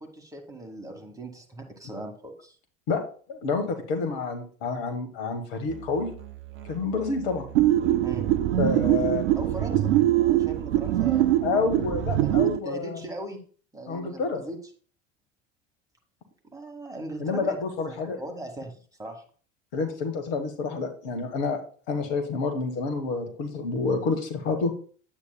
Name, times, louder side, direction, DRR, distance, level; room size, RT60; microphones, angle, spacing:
voice 1, 0.0-2.6 8.0-8.3 9.3-11.3 12.2-12.3 12.6-13.4 13.7-14.6 16.4-17.6 17.9-19.2, right 2 dB, 10° right, 2 dB, 1.4 m, -39 dB
voice 2, 3.3-6.1 6.6-7.4 8.6-9.2 11.4-13.0 13.9-14.4 17.2-18.2 19.7-21.6 21.9-24.7, left 4 dB, 55° left, 6 dB, 1.4 m, -28 dB
Musical instrument, 5.7-12.5, right 13 dB, 30° right, 0.8 m, -43 dB
sound 1, 7.5-12.6, right 13 dB, 65° right, 0.5 m, -23 dB
9.7 x 8.2 x 2.2 m, 0.43 s
figure-of-eight pair, 70°, 39 cm